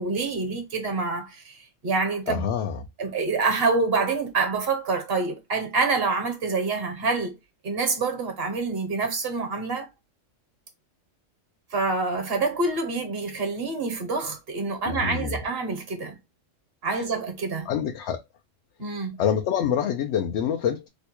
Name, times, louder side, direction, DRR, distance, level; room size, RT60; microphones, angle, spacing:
voice 1, 0.0-2.4 3.0-7.4 7.6-9.9 11.7-16.2 16.8-17.7 18.8-19.2, right 4 dB, 50° right, 1.2 m, -27 dB
voice 2, 2.3-2.9 14.8-15.4 17.6-18.2 19.2-20.9, left 8 dB, 65° left, 0.8 m, -26 dB
3.0 x 2.3 x 4.2 m
omnidirectional pair, 1.3 m